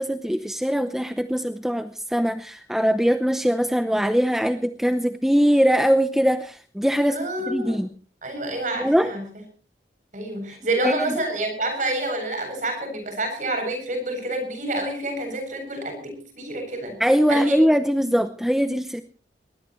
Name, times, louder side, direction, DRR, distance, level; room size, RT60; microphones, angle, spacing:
voice 1, 0.0-7.9 8.8-9.1 10.5-10.6 10.8-11.2 17.0-19.0, equal, ahead, 8 dB, 0.7 m, -22 dB
voice 2, 7.1-7.8 8.2-9.2 10.1-17.0 17.3-17.6, right 2 dB, 45° right, 5 dB, 7.9 m, -28 dB
22.0 x 19.5 x 3.2 m, 0.41 s
head